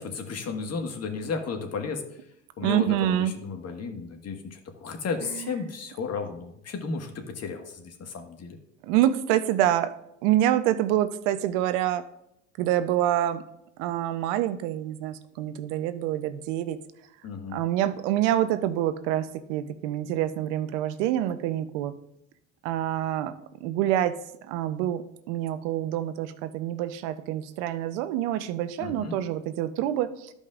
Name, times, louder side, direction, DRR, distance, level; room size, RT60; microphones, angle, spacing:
voice 1, 0.0-2.0 2.6-8.6 17.2-17.6 28.8-29.2, left 4 dB, 45° left, 5 dB, 1.6 m, -34 dB
voice 2, 2.6-3.3 5.3-5.5 8.8-9.9 10.2-12.0 12.6-13.4 13.8-16.8 17.5-21.9 22.6-23.3 23.6-24.1 24.5-30.3, right 12 dB, 75° right, 12 dB, 0.7 m, -26 dB
14.0 x 5.2 x 2.5 m, 0.78 s
hypercardioid pair, 80°, 37 cm